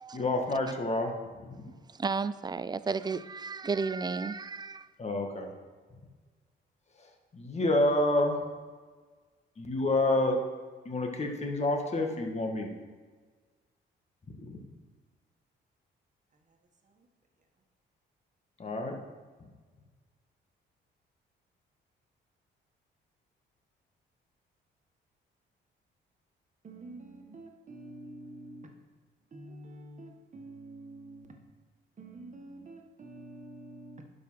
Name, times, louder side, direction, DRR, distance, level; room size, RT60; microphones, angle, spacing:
voice 1, 0.1-1.8 5.0-5.5 5.9-6.1 6.9-8.5 9.6-10.4 10.8-12.7 14.2-14.7 18.6-19.0 19.4-19.5, left 2 dB, 35° left, 1.8 m, -29 dB
voice 2, 1.9-4.9, right 4 dB, 20° right, 0.4 m, -33 dB
voice 3, 26.6-28.8 29.3-31.6 32.0-34.1, right 2 dB, 40° right, 1.6 m, -48 dB
11.0 x 5.6 x 5.7 m
cardioid pair, 90°, 20 cm